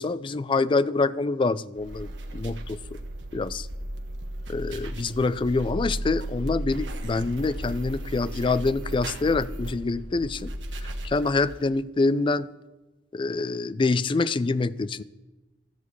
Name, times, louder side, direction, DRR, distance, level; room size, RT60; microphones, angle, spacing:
voice 1, 0.0-3.0 3.3-3.7 4.5-10.5 11.0-12.5 13.1-15.0, left 3 dB, 25° left, 0.3 m, -26 dB
sound 1, 1.8-11.7, right 1 dB, 75° right, 1.3 m, -35 dB
13.0 x 4.6 x 8.3 m
head